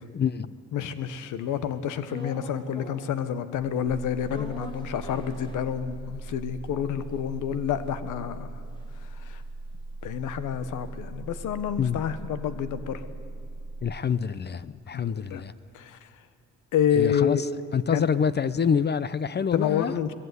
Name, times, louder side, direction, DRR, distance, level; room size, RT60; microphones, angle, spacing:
voice 1, 0.1-0.5 11.8-12.0 13.8-15.5 16.9-17.5 17.7-20.0, left 7 dB, 35° left, 16 dB, 0.6 m, -26 dB
voice 2, 0.7-8.5 9.2-9.4 10.0-13.0 14.9-15.4 15.7-16.0 16.7-17.4 17.9-18.1 19.5-20.1, left 9 dB, 85° left, 12 dB, 1.2 m, -28 dB
sound 1, 2.1-3.3 3.6-6.2 6.5-6.6 6.8-11.3 11.7-15.7, left 1 dB, 15° left, 2.9 m, -46 dB
sound 2, 3.9-14.0, right 2 dB, 20° right, 1.0 m, -39 dB
20.0 x 15.0 x 9.7 m, 2.4 s
cardioid pair, 90°, 30 cm